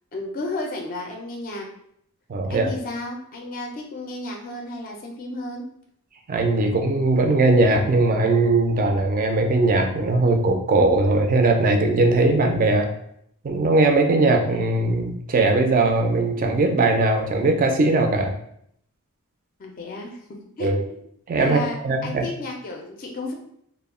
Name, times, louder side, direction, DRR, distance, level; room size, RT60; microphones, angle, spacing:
voice 1, 0.1-1.7 2.5-5.6 19.6-20.2 20.6-21.0 21.4-23.3, left 2 dB, 40° left, 1 dB, 0.4 m, -32 dB
voice 2, 2.3-2.7 6.3-12.9 13.4-18.3 20.6-20.8 21.3-22.2, right 2 dB, 40° right, 3 dB, 0.4 m, -20 dB
2.2 x 2.1 x 3.5 m, 0.71 s
head